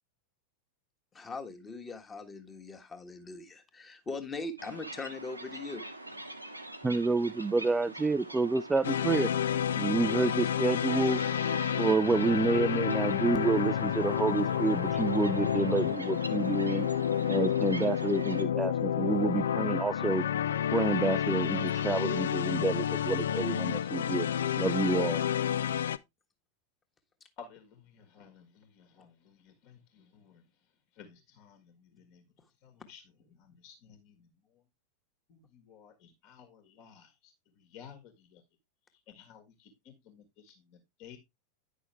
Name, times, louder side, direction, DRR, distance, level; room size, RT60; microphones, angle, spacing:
voice 1, 1.1-5.8, left 3 dB, 20° left, 1.5 m, -40 dB
sound 1, 4.6-18.4, right 1 dB, 85° right, 1.1 m, -43 dB
voice 2, 6.8-9.3 9.7-11.2 11.8-16.9 17.3-20.2 20.7-24.3 24.6-25.2, right 3 dB, 10° right, 0.4 m, -29 dB
sound 2, 8.8-26.0, left 9 dB, 65° left, 0.4 m, -30 dB
voice 3, 27.4-30.4 30.9-32.2 32.6-33.0 33.3-34.3 35.3-38.4 39.1-41.2, left 7 dB, 45° left, 1.7 m, -55 dB
10.0 x 6.2 x 3.2 m
figure-of-eight pair, 90°, 0 cm